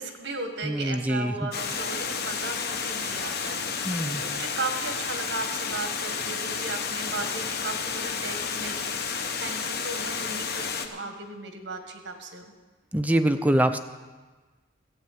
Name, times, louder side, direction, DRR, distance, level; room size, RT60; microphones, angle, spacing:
voice 1, 0.0-12.4, right 3 dB, 65° right, 5 dB, 1.6 m, -36 dB
voice 2, 0.6-1.5 3.8-4.2 12.9-13.8, right 1 dB, 10° right, 8 dB, 0.5 m, -24 dB
Water, 1.5-10.9, left 6 dB, 55° left, 1.0 m, -31 dB
13.5 x 8.6 x 7.4 m, 1.3 s
head